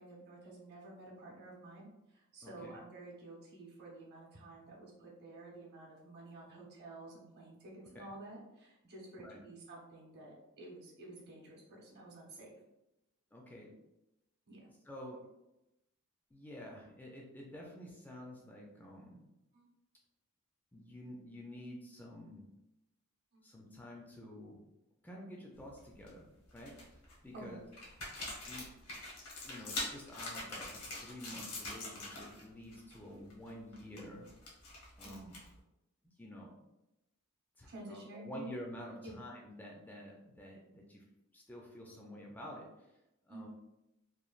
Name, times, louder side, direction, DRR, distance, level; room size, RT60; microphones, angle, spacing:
voice 1, 0.0-12.5 14.5-14.6 19.5-19.7 23.3-23.4 27.3-27.6 31.2-31.4 35.0-35.2 37.7-38.5 39.0-39.2 43.3-43.5, right 2 dB, 50° right, -3 dB, 0.8 m, -51 dB
voice 2, 2.4-2.8 7.9-8.1 9.2-9.4 13.3-13.7 14.8-15.2 16.3-19.3 20.7-22.5 23.4-24.7 25.0-27.6 28.4-28.7 29.4-34.3 35.0-35.4 36.2-36.5 37.6-41.0 41.3-42.9 43.2-43.5, equal, 10° left, -2 dB, 0.3 m, -49 dB
sound 1, 25.6-26.1 26.5-27.1 27.7-32.4 32.7-33.0 33.3-35.6, left 2 dB, 80° left, 0.9 m, -44 dB
3.1 x 2.2 x 2.3 m, 0.91 s
head